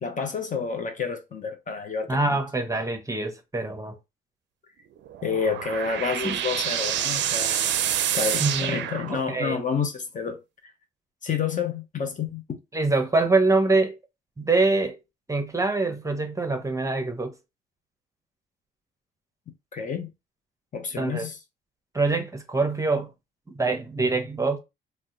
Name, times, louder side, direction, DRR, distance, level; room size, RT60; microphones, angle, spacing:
voice 1, 0.0-2.4 5.2-7.7 8.1-10.7 11.2-12.6 19.7-20.1 20.7-21.4, left 6 dB, 40° left, 0.7 m, -29 dB
voice 2, 2.1-3.9 6.2-6.4 8.4-8.8 9.1-9.6 12.7-13.9 14.4-15.0 15.3-17.3 21.0-21.3 21.9-23.1 23.5-24.6, right 3 dB, 15° right, 0.7 m, -24 dB
sound 1, 5.0-9.6, right 10 dB, 65° right, 0.4 m, -27 dB
2.7 x 2.1 x 3.6 m
cardioid pair, 90°, 20 cm